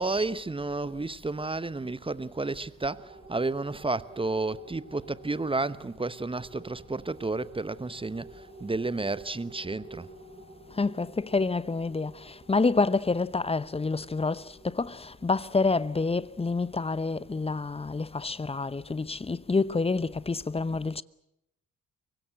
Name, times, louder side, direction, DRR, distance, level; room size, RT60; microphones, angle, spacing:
voice 1, 0.0-10.1, right 3 dB, 15° right, 1.0 m, -31 dB
sound 1, 2.9-17.7, right 3 dB, 90° right, 2.0 m, -52 dB
voice 2, 10.7-21.0, left 3 dB, 15° left, 0.9 m, -28 dB
24.5 x 23.5 x 7.7 m
figure-of-eight pair, 45°, 41 cm